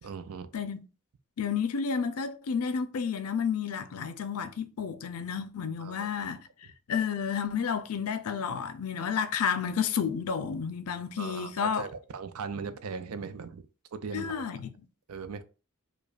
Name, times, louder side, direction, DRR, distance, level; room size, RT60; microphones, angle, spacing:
voice 1, 0.0-0.5 5.8-6.1 11.2-13.7 13.9-14.4 15.1-15.4, right 5 dB, 80° right, 0.5 m, -38 dB
voice 2, 1.4-6.4 6.9-11.9 14.1-14.7, left 6 dB, 90° left, 0.5 m, -31 dB
4.9 x 2.2 x 2.4 m
head